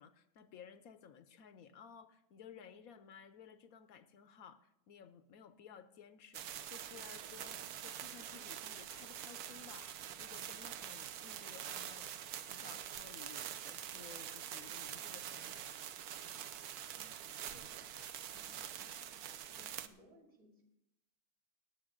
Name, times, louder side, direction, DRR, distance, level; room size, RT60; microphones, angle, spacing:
voice 1, 0.0-12.1 12.4-15.8, left 7 dB, 65° left, 12 dB, 1.0 m, -57 dB
sound 1, 6.3-19.9, right 10 dB, 70° right, 1.2 m, -45 dB
voice 2, 17.5-19.1 19.4-20.6, right 1 dB, 55° right, 0 dB, 2.8 m, -64 dB
19.5 x 7.9 x 3.8 m, 0.82 s
omnidirectional pair, 1.7 m